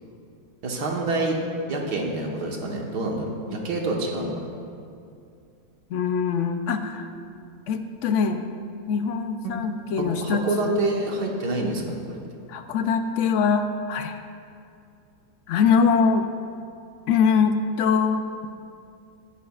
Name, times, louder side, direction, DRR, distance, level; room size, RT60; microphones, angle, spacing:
voice 1, 0.6-1.4 1.7-4.3 10.2-12.2, right 2 dB, 75° right, 0 dB, 1.9 m, -27 dB
voice 2, 5.9-7.1 7.7-8.4 8.9-10.7 12.5-14.2 15.5-16.3 17.1-18.5, left 6 dB, 70° left, 8 dB, 0.7 m, -23 dB
15.0 x 10.5 x 2.4 m, 2.5 s
omnidirectional pair, 1.8 m